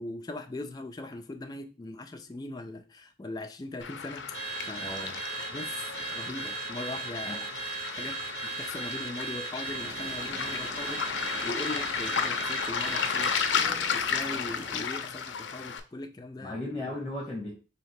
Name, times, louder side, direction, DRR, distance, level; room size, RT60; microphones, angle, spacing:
voice 1, 0.0-16.7, left 2 dB, 20° left, 0.3 m, -40 dB
Waves surf, 3.8-15.8, left 6 dB, 75° left, 0.5 m, -33 dB
Car / Alarm, 4.3-13.6, right 4 dB, 45° right, 1.0 m, -37 dB
voice 2, 4.8-5.2 7.2-7.4 16.4-17.5, left 1 dB, 5° left, 0.9 m, -36 dB
sound 1, 9.6-14.9, right 1 dB, 30° right, 0.7 m, -45 dB
3.2 x 2.8 x 4.6 m
head